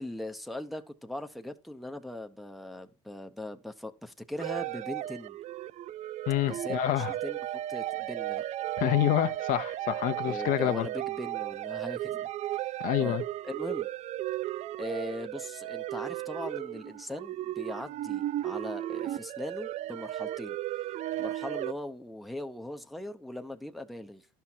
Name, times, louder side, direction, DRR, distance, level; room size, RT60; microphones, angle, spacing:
voice 1, 0.0-5.4 6.5-8.4 10.2-12.3 12.5-12.6 13.0-13.2 13.4-13.9 14.8-20.6 21.2-24.3, left 1 dB, ahead, 0.8 m, -40 dB
sound 1, 4.4-21.7, right 14 dB, 45° right, 0.4 m, -35 dB
voice 2, 6.3-7.1 8.8-10.9 12.8-13.2, left 14 dB, 60° left, 0.8 m, -27 dB
11.5 x 5.7 x 4.5 m
supercardioid pair, 95°, 16 cm